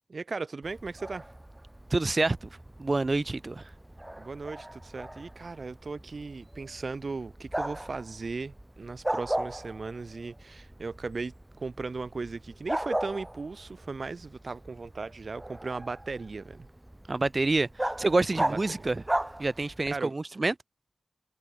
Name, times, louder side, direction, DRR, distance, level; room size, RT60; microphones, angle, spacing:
voice 1, 0.1-1.3 4.2-16.7 18.3-18.9 19.9-20.1, right 4 dB, 60° right, 7.5 m, -37 dB
Bark, 0.6-20.0, right 1 dB, 15° right, 4.3 m, -37 dB
voice 2, 1.9-2.5 2.8-3.7 17.1-19.0 19.4-20.5, right 2 dB, 40° right, 1.0 m, -27 dB
wide cardioid pair, 95°, 0 cm